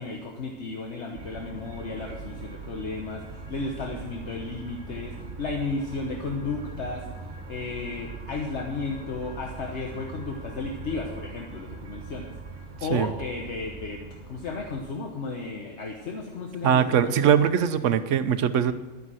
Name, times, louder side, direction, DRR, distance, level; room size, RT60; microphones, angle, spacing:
voice 1, 0.0-12.3 12.8-17.5, left 3 dB, 65° left, 2 dB, 1.3 m, -34 dB
sound 1, 1.1-14.9, right 4 dB, 65° right, 1.7 m, -41 dB
voice 2, 16.6-18.7, right 8 dB, 85° right, 13 dB, 1.0 m, -21 dB
11.0 x 9.6 x 6.3 m, 1.2 s
omnidirectional pair, 1.3 m